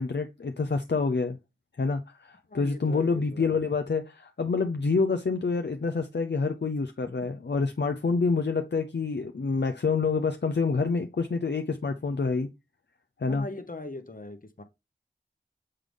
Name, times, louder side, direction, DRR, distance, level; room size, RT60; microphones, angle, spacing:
voice 1, 0.0-1.4 1.8-12.5 13.2-13.4, left 4 dB, 65° left, 0.6 m, -27 dB
voice 2, 2.5-3.6 13.3-14.6, left 2 dB, 45° left, 1.0 m, -40 dB
7.7 x 3.7 x 3.4 m
wide cardioid pair, 45°, 19 cm